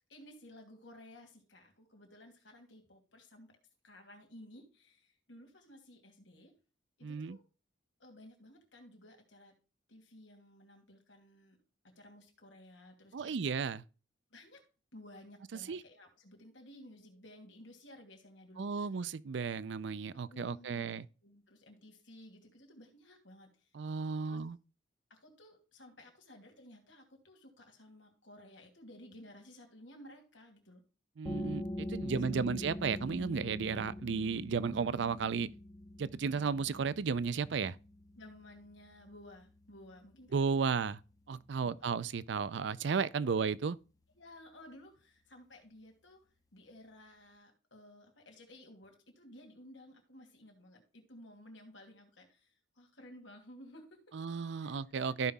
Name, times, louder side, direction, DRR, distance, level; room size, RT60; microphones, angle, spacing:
voice 1, 0.1-3.6 3.8-6.5 7.0-7.4 8.0-9.5 9.9-11.6 11.8-13.3 14.3-14.6 14.9-18.9 20.3-20.9 21.2-23.7 24.2-24.4 25.1-30.8 32.0-32.6 38.1-40.8 41.6-41.9 43.2-43.4 44.1-46.2 46.5-54.2 54.6-54.8 55.1-55.3, left 1 dB, 75° left, 2.6 m, -56 dB
voice 2, 7.0-7.4 13.1-13.8 15.7-15.8 18.6-21.0 23.7-24.6 31.2-35.5 36.0-37.8 40.3-41.0 41.3-43.8 54.1-55.3, right 5 dB, 65° right, 0.4 m, -34 dB
sound 1, 31.3-42.6, left 1 dB, 20° left, 0.8 m, -44 dB
14.5 x 5.6 x 2.3 m
head